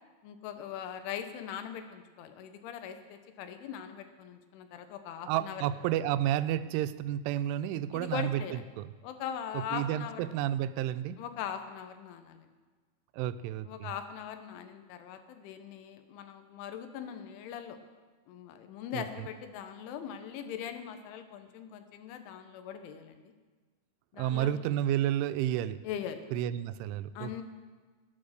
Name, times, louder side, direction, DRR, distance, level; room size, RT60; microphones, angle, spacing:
voice 1, 0.2-5.7 7.9-8.6 9.0-10.3 11.2-12.5 13.7-17.8 18.3-23.3 24.1-24.6 25.8-26.3 27.2-27.4, left 9 dB, 85° left, 8 dB, 3.4 m, -41 dB
voice 2, 5.3-8.4 8.8-8.9 9.7-11.2 13.1-13.9 18.9-19.0 24.2-25.8 26.3-27.4, right 12 dB, 85° right, 12 dB, 3.0 m, -31 dB
19.0 x 8.5 x 6.5 m, 1.4 s
omnidirectional pair, 5.5 m